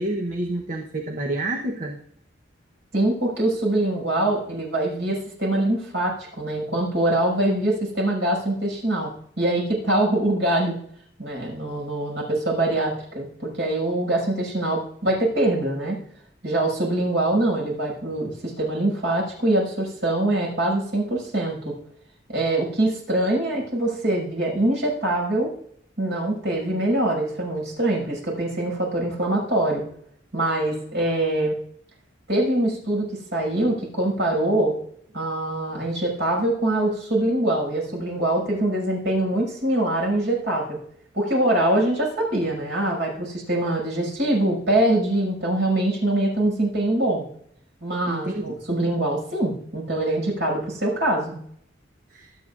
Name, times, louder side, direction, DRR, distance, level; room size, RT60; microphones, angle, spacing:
voice 1, 0.0-2.0 48.1-48.6 52.1-52.3, right 1 dB, 45° right, 2 dB, 1.0 m, -28 dB
voice 2, 2.9-10.8 11.2-16.0 16.4-21.8 22.3-25.5 26.0-29.8 30.3-31.5 32.3-34.7 35.1-40.8 41.1-47.3 47.8-51.4, right 1 dB, 65° right, -2 dB, 6.3 m, -23 dB
24.0 x 8.6 x 2.6 m, 0.66 s
head